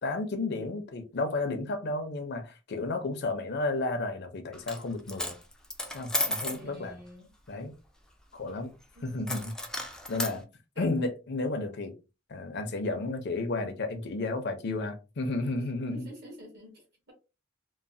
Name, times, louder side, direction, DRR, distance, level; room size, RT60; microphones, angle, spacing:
voice 1, 0.0-5.4 5.9-7.0 7.5-7.7 8.3-8.7 9.0-9.5 10.1-10.4 10.8-11.9 12.3-16.1, left 2 dB, 55° left, 0.6 m, -32 dB
Coin (dropping), 4.5-4.8 5.1-6.6 9.3-10.4, left 1 dB, 5° left, 0.4 m, -33 dB
voice 2, 6.4-7.3 8.9-9.3 10.7-10.9 15.9-17.1, left 1 dB, 55° right, 1.5 m, -49 dB
3.1 x 2.1 x 2.6 m
head